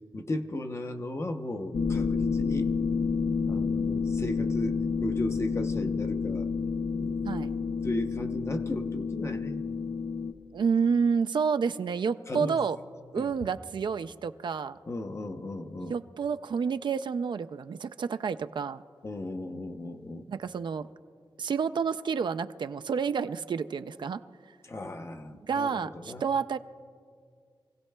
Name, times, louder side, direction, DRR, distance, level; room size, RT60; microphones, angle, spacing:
voice 1, 0.1-2.7 3.4-6.5 6.9-9.6 12.3-12.6 13.1-13.3 14.9-16.0 19.0-20.3 24.6-26.2, left 1 dB, 30° left, 6 dB, 0.7 m, -36 dB
sound 1, 1.7-10.3, left 5 dB, 70° left, 0.6 m, -29 dB
voice 2, 10.5-12.8 13.1-14.8 15.8-18.8 20.3-20.9 21.4-24.2 25.4-26.6, right 6 dB, 60° right, 10 dB, 0.3 m, -29 dB
27.5 x 16.5 x 2.2 m, 2.1 s
wide cardioid pair, 165°, 9 cm